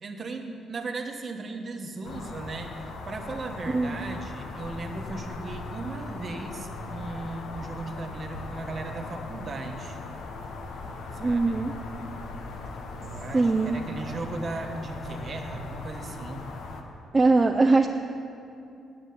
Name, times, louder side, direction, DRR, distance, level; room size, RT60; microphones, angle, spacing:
voice 1, 0.0-10.0 11.2-11.7 13.0-16.5, right 3 dB, 40° right, 4 dB, 1.1 m, -37 dB
sound 1, 2.0-16.8, left 3 dB, 75° left, 1.0 m, -39 dB
voice 2, 11.2-11.7 13.3-13.8 17.1-17.9, right 3 dB, 25° right, 3 dB, 0.5 m, -21 dB
9.6 x 8.0 x 7.0 m, 2.6 s
cardioid pair, 90°, 0 cm